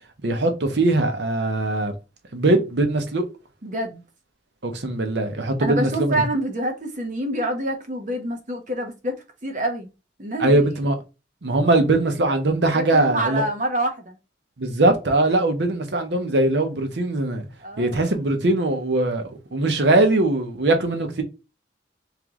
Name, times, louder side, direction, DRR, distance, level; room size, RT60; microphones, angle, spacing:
voice 1, 0.2-1.9 2.3-3.3 4.6-6.1 10.4-11.0 11.4-13.4 14.6-17.5 17.8-21.2, right 2 dB, 80° right, 0.8 m, -21 dB
voice 2, 3.6-4.0 5.6-9.2 9.4-9.9 10.2-10.6 12.7-14.2 17.6-18.0, right 1 dB, 45° right, 0.9 m, -27 dB
3.2 x 3.1 x 3.6 m
head